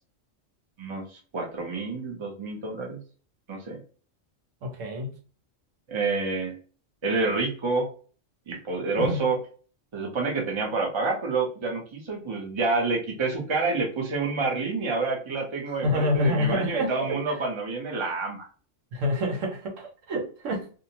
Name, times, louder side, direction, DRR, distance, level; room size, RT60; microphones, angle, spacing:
voice 1, 0.8-3.0 3.5-3.8 5.9-6.6 7.0-7.9 8.5-9.4 9.9-18.5, right 3 dB, 30° right, 0.6 m, -28 dB
voice 2, 4.6-5.2 9.0-9.3 15.7-17.4 18.9-20.7, left 1 dB, 90° right, 1.1 m, -28 dB
2.6 x 2.0 x 2.8 m
omnidirectional pair, 1.3 m